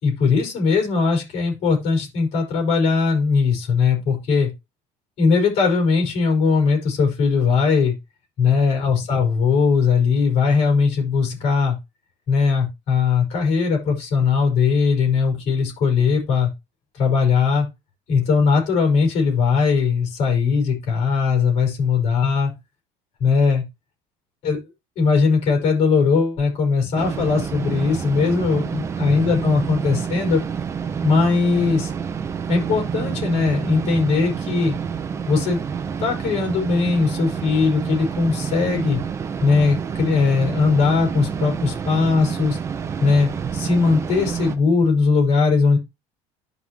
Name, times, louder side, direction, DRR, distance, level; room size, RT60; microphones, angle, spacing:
voice 1, 0.0-4.5 5.2-7.9 8.4-11.8 12.3-16.5 17.0-17.7 18.1-22.5 23.2-23.6 24.4-24.6 25.0-30.4 31.0-31.9 32.5-34.8 35.3-35.6 36.0-39.0 39.4-42.6 43.0-45.8, left 5 dB, 45° left, 2 dB, 5.0 m, -19 dB
sound 1, 27.0-44.6, right 7 dB, 20° right, 0.7 m, -28 dB
11.5 x 5.3 x 3.0 m, 0.22 s
cardioid pair, 175°, 14 cm